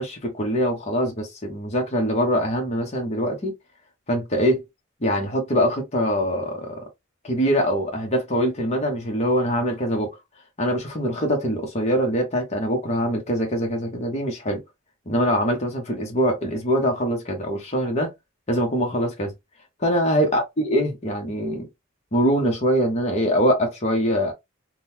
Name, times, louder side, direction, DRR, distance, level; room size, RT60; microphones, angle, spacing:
voice 1, 0.0-3.5 4.1-4.7 5.0-6.8 7.2-10.1 10.6-14.6 15.1-18.1 18.5-19.3 19.8-21.7 22.1-24.3, equal, 35° left, 1.0 m, -23 dB
3.7 x 2.3 x 2.8 m
head